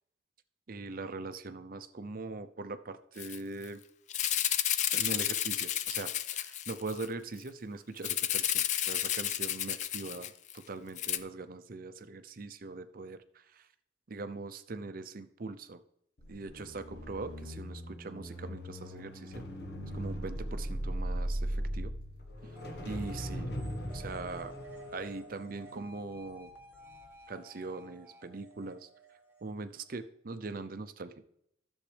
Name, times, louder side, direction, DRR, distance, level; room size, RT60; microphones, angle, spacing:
voice 1, 0.7-3.8 4.9-13.7 14.1-15.8 16.3-19.3 19.9-21.9 22.4-22.5 22.8-23.5 23.9-24.5 24.9-26.5 27.3-28.9 29.4-31.2, right 3 dB, 50° right, 11 dB, 0.6 m, -41 dB
Rattle (instrument), 3.2-3.4 3.6-3.7 4.1-7.1 8.0-10.6 11.0-11.2, left 11 dB, 40° left, 0.4 m, -31 dB
sound 1, 16.2-26.5 26.9-27.1, equal, 60° left, 1.3 m, -39 dB
sound 2, 22.6-30.0, right 2 dB, 15° right, 1.2 m, -53 dB
11.5 x 7.2 x 3.4 m, 0.74 s
head